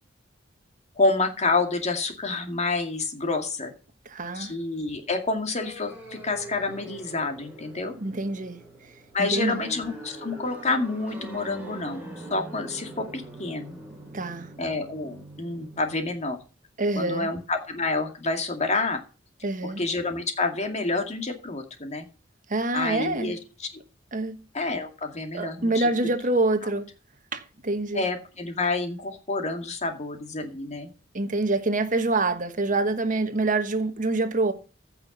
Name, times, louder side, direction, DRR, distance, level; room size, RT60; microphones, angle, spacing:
voice 1, 1.0-3.7 4.3-7.9 9.1-12.0 12.3-13.8 14.6-16.4 17.0-19.0 19.6-22.1 22.7-23.7 24.5-25.9 27.9-30.9, left 3 dB, 35° left, 2.3 m, -28 dB
voice 2, 4.0-4.5 8.0-8.6 9.2-9.6 14.1-14.5 16.8-17.3 19.4-19.8 22.5-23.3 24.1-24.4 25.3-26.9 27.3-28.0 31.1-34.5, right 2 dB, 45° right, 1.3 m, -26 dB
sound 1, 5.6-16.1, right 2 dB, 10° right, 5.5 m, -43 dB
15.5 x 6.0 x 5.4 m
head